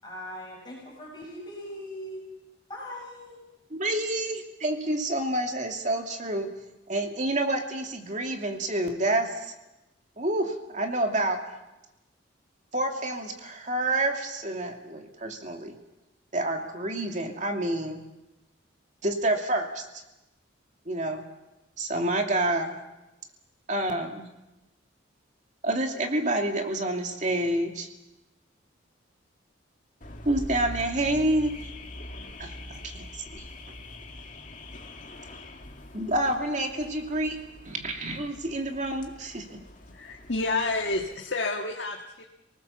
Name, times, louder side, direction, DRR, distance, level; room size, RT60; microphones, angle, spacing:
voice 1, 0.0-2.2 2.7-3.4, equal, 25° left, -2 dB, 6.7 m, -40 dB
voice 2, 3.7-6.5 6.9-9.5 10.2-11.4 12.7-15.7 16.3-18.0 19.0-19.9 20.9-21.2 21.8-22.8 23.7-24.3 25.6-27.9 30.2-31.7 32.4-33.1 33.3-33.4 35.9-37.4 37.6-39.6, right 1 dB, 40° right, 3 dB, 2.7 m, -28 dB
Car / Alarm, 30.0-41.2, left 1 dB, 40° left, 2.2 m, -44 dB
voice 3, 39.9-42.2, left 2 dB, 60° left, 1 dB, 1.9 m, -29 dB
30.0 x 19.0 x 7.1 m, 0.96 s
head